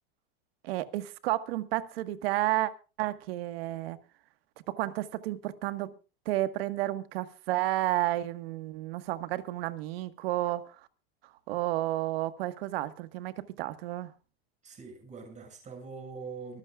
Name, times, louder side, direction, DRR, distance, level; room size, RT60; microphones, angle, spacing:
voice 1, 0.6-2.7 3.0-4.0 4.7-5.9 6.3-10.8 11.2-14.1, right 15 dB, 70° right, 1.7 m, -31 dB
voice 2, 14.6-16.6, right 4 dB, 20° right, 7.1 m, -43 dB
24.0 x 15.0 x 2.5 m
supercardioid pair, 145°, 31 cm